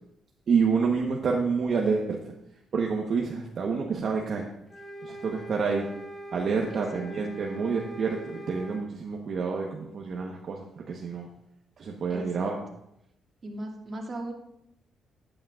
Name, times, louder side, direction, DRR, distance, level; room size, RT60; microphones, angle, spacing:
voice 1, 0.5-2.2 2.7-4.5 5.0-5.9 6.3-11.3 11.8-12.6, right 5 dB, 55° right, 0 dB, 1.1 m, -28 dB
sound 1, 4.7-8.9, right 1 dB, 15° left, 1.9 m, -42 dB
voice 2, 6.7-7.0 12.1-12.5 13.4-14.3, right 2 dB, 40° right, 0 dB, 2.2 m, -37 dB
12.5 x 8.6 x 2.5 m, 0.80 s
cardioid pair, 90°, 0 cm